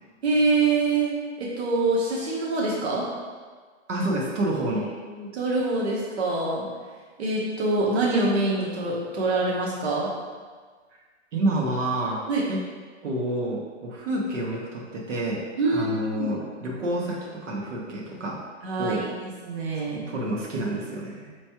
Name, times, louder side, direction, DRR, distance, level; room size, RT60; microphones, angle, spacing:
voice 1, 0.2-1.1 1.4-3.0 4.7-4.8 5.1-6.6 7.2-10.1 12.3-12.4 15.6-16.3 18.6-20.0, right 3 dB, 60° right, -4 dB, 1.0 m, -25 dB
voice 2, 3.9-4.9 11.3-12.2 12.5-12.6 13.0-15.4 15.7-18.4 18.8-19.1 19.7-21.3, right 1 dB, 85° right, -3 dB, 1.1 m, -28 dB
4.4 x 3.1 x 2.9 m, 1.5 s
hypercardioid pair, 175°, 36 cm